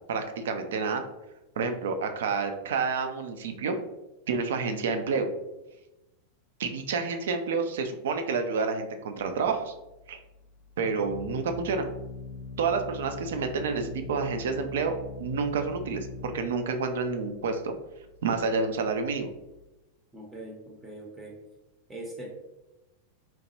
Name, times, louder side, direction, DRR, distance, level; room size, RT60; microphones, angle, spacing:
voice 1, 0.1-1.0 1.6-3.8 4.3-5.3 6.6-9.7 10.1-10.2 10.8-11.8 12.6-14.9 15.2-17.7 18.2-19.3, right 5 dB, 60° right, 6 dB, 0.3 m, -29 dB
Organ, 9.2-19.7, left 4 dB, 45° left, 0.5 m, -43 dB
voice 2, 20.1-21.4 21.9-22.3, right 1 dB, 10° right, -1 dB, 0.6 m, -41 dB
2.9 x 2.1 x 3.0 m, 0.97 s
figure-of-eight pair, 90°, 0 cm